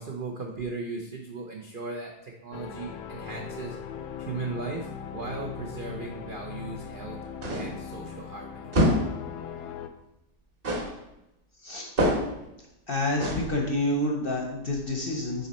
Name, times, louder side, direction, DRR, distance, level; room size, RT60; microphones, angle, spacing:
voice 1, 0.0-3.8 4.2-7.2 7.6-8.7, right 3 dB, 65° right, 0 dB, 0.5 m, -37 dB
sound 1, 2.5-9.9, left 8 dB, 75° left, 1.2 m, -39 dB
sound 2, 7.4-7.8 8.7-9.2 10.6-11.0 12.0-12.4 13.2-13.5, equal, 35° right, 1.2 m, -25 dB
voice 2, 12.9-15.5, left 1 dB, 45° left, 0 dB, 0.8 m, -28 dB
6.7 x 4.2 x 4.2 m, 0.87 s
omnidirectional pair, 1.8 m